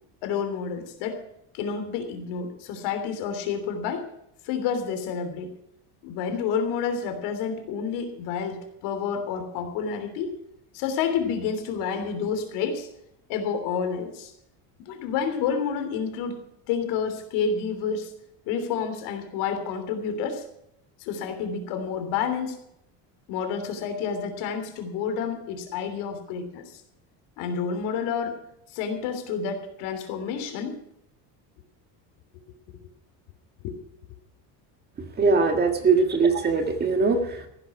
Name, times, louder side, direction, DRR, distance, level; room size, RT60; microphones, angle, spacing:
voice 1, 0.2-1.2 1.5-4.1 4.4-5.5 6.0-10.3 10.7-12.9 13.3-14.3 14.8-16.4 16.7-18.1 18.4-20.4 21.0-22.6 23.3-26.8 27.4-28.4 28.7-30.8 33.6-33.8, left 6 dB, 80° left, 7 dB, 3.2 m, -29 dB
voice 2, 35.2-37.5, right 4 dB, 25° right, 5 dB, 1.7 m, -21 dB
15.5 x 11.5 x 5.9 m, 0.77 s
cardioid pair, 165°, 40 cm